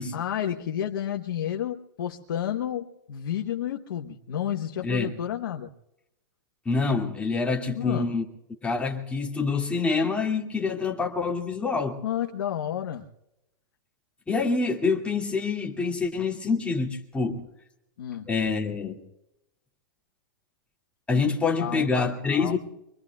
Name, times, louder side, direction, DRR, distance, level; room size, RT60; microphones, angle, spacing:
voice 1, 0.0-5.7 7.7-8.1 12.0-13.1 18.0-18.3 21.6-22.6, left 10 dB, 75° left, 1.2 m, -31 dB
voice 2, 4.8-5.2 6.7-8.2 8.6-12.0 14.3-17.5 18.3-19.0 21.1-22.6, left 4 dB, 10° left, 2.3 m, -26 dB
24.5 x 24.5 x 2.4 m
hypercardioid pair, 130°, 12 cm